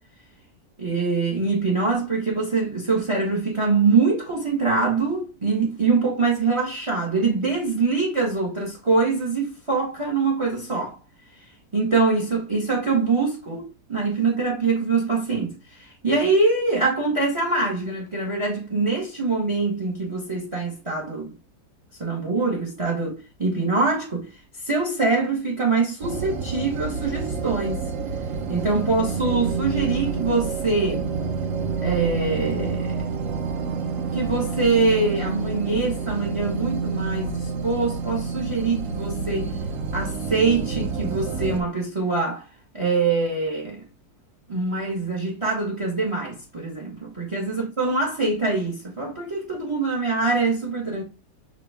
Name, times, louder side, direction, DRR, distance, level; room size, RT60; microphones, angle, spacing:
voice 1, 0.8-11.0 11.7-21.3 22.0-24.3 24.6-27.9 28.5-31.1 31.8-33.0 34.1-39.5 39.9-42.4 42.7-43.8 44.5-51.0, right 3 dB, 25° right, 0.8 m, -24 dB
sound 1, 26.0-41.6, right 5 dB, 60° right, 0.9 m, -28 dB
6.2 x 2.4 x 3.3 m
omnidirectional pair, 1.8 m